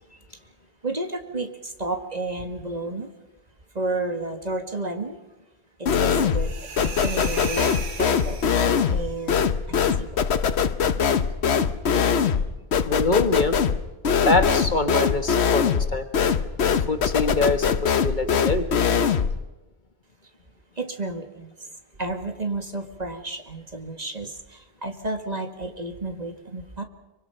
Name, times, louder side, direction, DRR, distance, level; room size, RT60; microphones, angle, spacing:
voice 1, 0.8-3.1 3.7-5.2 5.8-7.7 7.9-8.4 8.9-10.3 20.8-21.7 22.0-26.8, right 2 dB, 40° right, 6 dB, 1.9 m, -32 dB
sound 1, 5.9-6.5 6.8-19.4, left 6 dB, 90° left, 1.2 m, -22 dB
sound 2, 6.3-9.1, right 4 dB, 85° right, 1.7 m, -36 dB
voice 2, 12.8-13.6 14.1-16.1 16.7-18.7, left 3 dB, 45° left, 8 dB, 1.7 m, -24 dB
24.5 x 24.5 x 5.7 m, 1.1 s
omnidirectional pair, 1.1 m